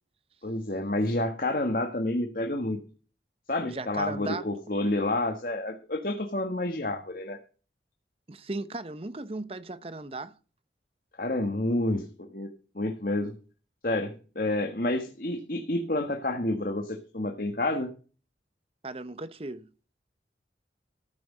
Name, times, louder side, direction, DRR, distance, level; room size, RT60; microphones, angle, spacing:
voice 1, 0.4-2.8 3.5-7.4 11.2-13.3 13.8-17.9, left 1 dB, 50° left, 1.5 m, -29 dB
voice 2, 3.7-4.5 8.3-10.3 18.8-19.7, right 2 dB, 35° right, 0.8 m, -36 dB
14.0 x 6.0 x 7.4 m
head